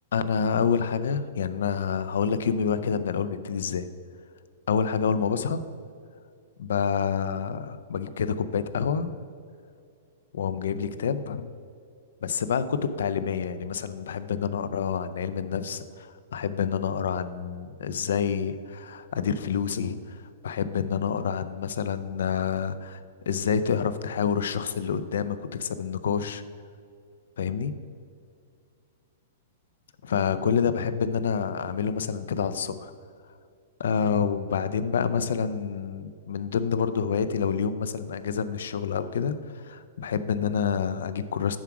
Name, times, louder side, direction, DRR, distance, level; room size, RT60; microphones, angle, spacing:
voice 1, 0.1-3.9 4.7-5.6 6.6-9.2 10.3-11.4 12.2-26.4 27.4-27.7 30.0-32.9 33.8-41.6, left 6 dB, 75° left, 12 dB, 0.5 m, -28 dB
7.3 x 6.0 x 4.7 m, 2.3 s
hypercardioid pair, 175°, 0 cm